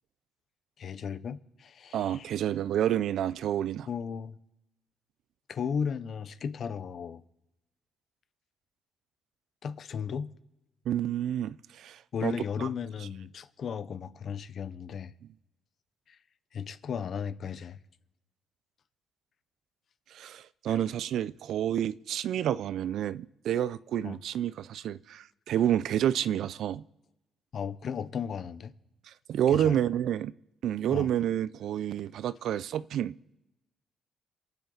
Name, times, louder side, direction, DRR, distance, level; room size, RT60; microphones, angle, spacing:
voice 1, 0.8-2.3 3.9-4.4 5.5-7.2 9.6-10.3 12.1-15.1 16.1-16.2 16.5-17.8 20.7-20.8 24.0-24.2 27.5-28.7 29.5-29.8 30.9-31.1, left 7 dB, 60° left, 0.9 m, -35 dB
voice 2, 1.9-3.9 10.9-12.3 12.6-12.7 20.1-26.8 29.3-30.3 30.6-33.1, right 10 dB, 75° right, 0.5 m, -29 dB
27.5 x 9.3 x 4.0 m
cardioid pair, 90°, 0 cm